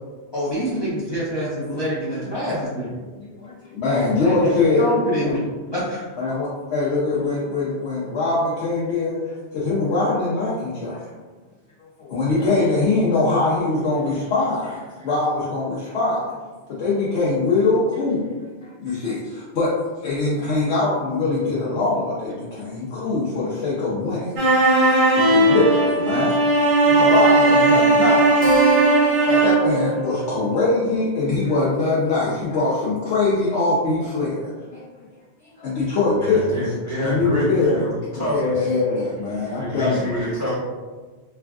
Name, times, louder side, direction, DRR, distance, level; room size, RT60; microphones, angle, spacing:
voice 1, 0.3-2.9 4.2-6.0, equal, 35° left, -8 dB, 0.4 m, -25 dB
voice 2, 3.2-4.9 5.2-5.3 6.2-11.0 11.8-16.3 16.7-18.3 18.6-19.7 20.0-24.3 25.1-26.3 26.8-34.8 35.6-36.6 37.0-37.8 38.1-40.3, left 3 dB, 75° left, -8 dB, 0.9 m, -23 dB
sound 1, 24.4-29.7, right 2 dB, 50° right, 0.4 m, -17 dB
Keyboard (musical), 28.4-33.4, right 5 dB, 70° right, 0.8 m, -30 dB
voice 3, 36.1-38.7 39.3-40.6, left 1 dB, 20° right, -9 dB, 0.7 m, -27 dB
3.2 x 2.3 x 2.3 m, 1.3 s
omnidirectional pair, 1.1 m